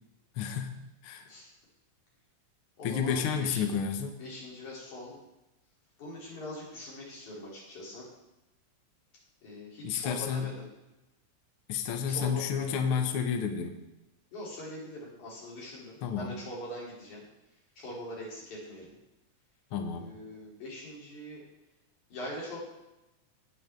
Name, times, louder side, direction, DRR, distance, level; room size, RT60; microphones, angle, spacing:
voice 1, 0.4-0.8 1.0-1.2 2.8-4.2 9.8-10.5 11.7-13.8 16.0-16.3 19.7-20.1, left 7 dB, 85° left, 5 dB, 1.2 m, -31 dB
voice 2, 2.8-3.7 4.2-5.2 6.0-8.1 9.4-10.7 12.0-13.1 14.3-17.2 17.8-18.9 19.9-21.4 22.1-22.6, left 1 dB, 60° left, -5 dB, 4.6 m, -42 dB
17.0 x 6.7 x 3.6 m, 0.96 s
omnidirectional pair, 3.8 m